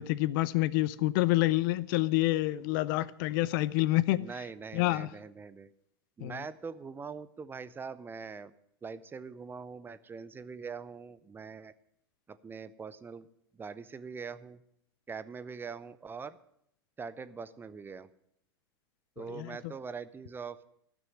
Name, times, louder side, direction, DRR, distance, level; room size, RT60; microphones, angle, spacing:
voice 1, 0.0-4.2 4.7-5.1 6.2-6.3 19.3-19.6, left 18 dB, 55° left, 0.5 m, -27 dB
voice 2, 4.1-5.7 6.2-8.5 8.8-11.7 12.3-13.3 13.5-14.6 15.1-16.4 17.0-18.1 19.2-20.6, right 5 dB, 15° right, 0.5 m, -43 dB
12.5 x 6.2 x 9.2 m
hypercardioid pair, 100°, 13 cm